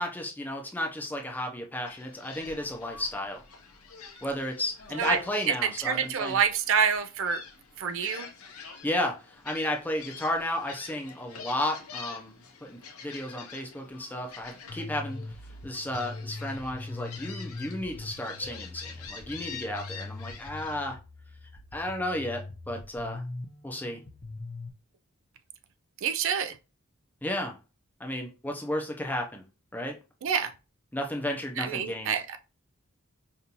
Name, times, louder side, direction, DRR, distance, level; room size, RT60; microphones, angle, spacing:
voice 1, 0.0-3.4 4.2-6.4 8.8-15.2 15.6-21.0 21.7-23.2 23.6-24.0 27.2-27.6 28.0-29.4 29.7-30.0 30.9-32.1, left 1 dB, 10° left, 0.6 m, -33 dB
Gull seagull, 1.9-20.9, left 6 dB, 90° left, 0.7 m, -47 dB
voice 2, 5.5-7.4 7.8-8.3 26.0-26.6 30.2-30.5 31.6-32.4, right 7 dB, 65° right, 0.4 m, -27 dB
sound 1, 14.7-24.7, left 2 dB, 50° left, 0.7 m, -42 dB
5.2 x 2.5 x 2.9 m
head